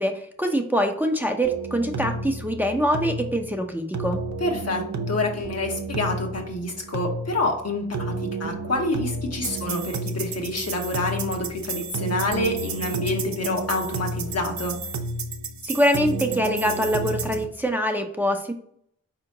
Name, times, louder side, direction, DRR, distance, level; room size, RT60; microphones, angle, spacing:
voice 1, 0.0-4.2 15.7-18.5, equal, 5° right, 3 dB, 0.6 m, -24 dB
sound 1, 1.4-17.4, right 3 dB, 70° right, 0.6 m, -31 dB
voice 2, 4.4-14.8, left 2 dB, 60° left, 2 dB, 1.1 m, -27 dB
4.2 x 2.9 x 3.7 m, 0.68 s
cardioid pair, 45°, 29 cm